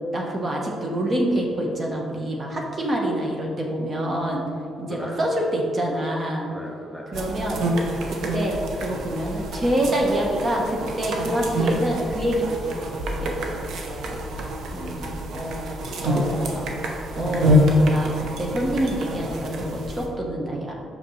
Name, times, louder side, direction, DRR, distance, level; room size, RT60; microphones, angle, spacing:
voice 1, 0.1-4.4 4.8-6.5 7.1-7.6 8.1-12.8 13.2-13.6 15.3-15.6 16.0-16.7 17.1-20.7, right 1 dB, 35° right, -1 dB, 1.1 m, -26 dB
voice 2, 6.5-7.1 14.7-15.5 15.9-16.5, equal, 5° left, -1 dB, 0.7 m, -38 dB
sound 1, 7.1-20.1, equal, 75° right, 0.8 m, -26 dB
5.8 x 5.5 x 3.2 m, 2.5 s
cardioid pair, 90°, 0 cm